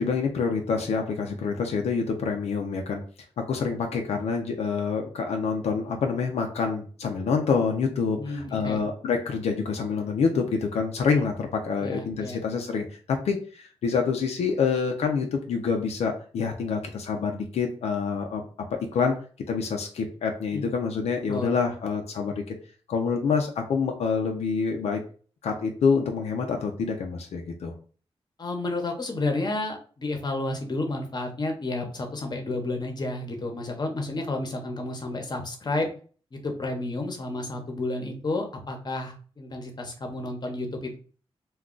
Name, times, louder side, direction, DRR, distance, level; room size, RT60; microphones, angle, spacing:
voice 1, 0.0-3.0 3.4-18.4 18.9-19.1 19.5-22.5 22.9-25.0 25.4-27.7, left 5 dB, 85° left, 3 dB, 0.5 m, -27 dB
voice 2, 8.2-8.8 11.8-12.4 20.5-20.7 21.3-21.5 28.4-35.9 36.3-41.0, left 2 dB, 40° left, 3 dB, 0.8 m, -31 dB
2.3 x 2.3 x 3.7 m, 0.40 s
cardioid pair, 80°, 11 cm